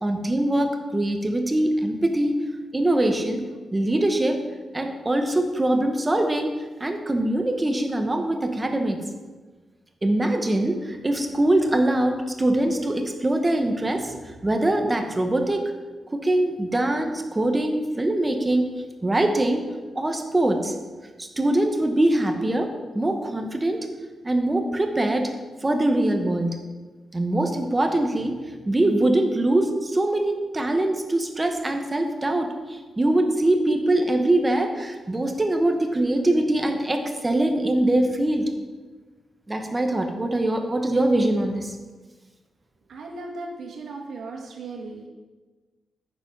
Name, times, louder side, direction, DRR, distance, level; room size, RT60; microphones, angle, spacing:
voice 1, 0.0-2.4 2.7-3.4 3.7-4.4 4.7-9.0 10.0-14.1 14.4-15.7 16.1-18.7 19.0-19.6 19.9-20.7 21.2-22.7 22.9-23.8 24.2-25.3 25.6-26.6 27.1-28.4 28.7-38.5 39.5-41.8, right 1 dB, 15° right, 5 dB, 1.1 m, -23 dB
voice 2, 42.9-45.1, right 3 dB, 70° right, -1 dB, 2.0 m, -36 dB
9.5 x 7.1 x 5.4 m, 1.3 s
wide cardioid pair, 135°, 0 cm